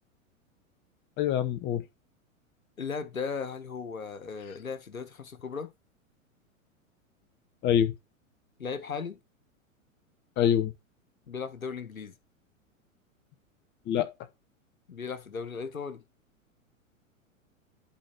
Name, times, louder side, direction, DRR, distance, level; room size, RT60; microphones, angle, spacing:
voice 1, 1.2-1.8 7.6-7.9 10.4-10.7 13.9-14.1, left 10 dB, 25° left, 1.0 m, -25 dB
voice 2, 2.8-5.7 8.6-9.2 11.3-12.1 14.9-16.0, left 5 dB, 80° left, 1.4 m, -36 dB
11.5 x 4.2 x 4.5 m
figure-of-eight pair, 95°, 41 cm